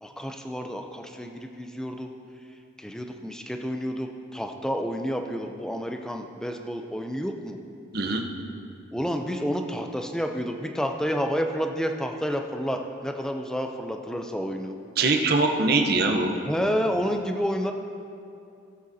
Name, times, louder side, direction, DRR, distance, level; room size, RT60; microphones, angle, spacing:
voice 1, 0.0-2.1 2.8-7.6 8.9-14.8 16.4-17.7, equal, 5° left, 4 dB, 0.5 m, -30 dB
voice 2, 15.0-16.4, right 3 dB, 55° right, 3 dB, 0.9 m, -22 dB
18.0 x 7.8 x 2.8 m, 2.5 s
head